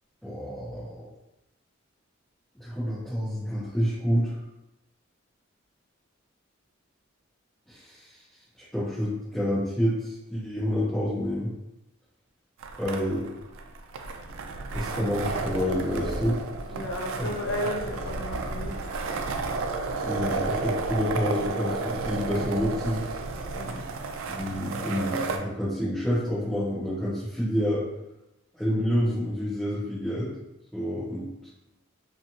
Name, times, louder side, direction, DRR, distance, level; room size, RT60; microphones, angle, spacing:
voice 1, 0.2-1.1 2.6-4.4 7.7-8.1 8.7-11.5 12.8-13.3 14.7-16.4 17.2-17.3 20.0-23.0 24.3-27.8 28.5-30.3 30.7-31.3, equal, 5° left, -11 dB, 0.7 m, -28 dB
sound 1, 12.6-25.4, right 3 dB, 75° right, 0.3 m, -32 dB
voice 2, 16.7-18.7 19.0-19.1 23.5-23.8, left 1 dB, 70° left, 0 dB, 0.6 m, -33 dB
2.9 x 2.4 x 2.6 m, 0.91 s
head